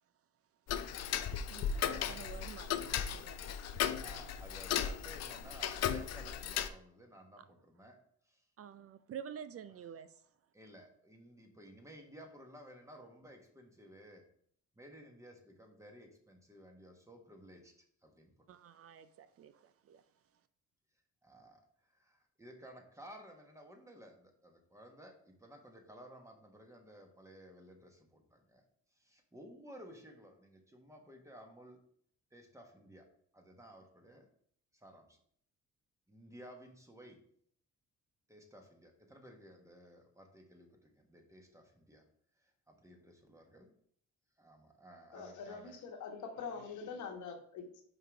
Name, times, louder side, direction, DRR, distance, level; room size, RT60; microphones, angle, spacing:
Tick-tock, 0.7-6.7, left 9 dB, 60° left, 0.5 m, -36 dB
voice 1, 1.5-3.6 7.4-7.5 8.6-10.3 18.5-20.0, right 8 dB, 50° right, 0.4 m, -49 dB
voice 2, 4.0-8.0 8.2-8.5 9.7-10.0 10.5-14.2 14.7-18.5 21.2-28.6 28.9-31.8 32.3-33.1 33.3-34.3 34.7-35.2 36.1-37.2 38.3-42.0 42.4-43.7 44.4-45.8, equal, 10° right, 1.2 m, -56 dB
voice 3, 45.1-47.8, left 5 dB, 75° left, 1.2 m, -44 dB
5.4 x 3.9 x 4.5 m
cardioid pair, 90°, 30 cm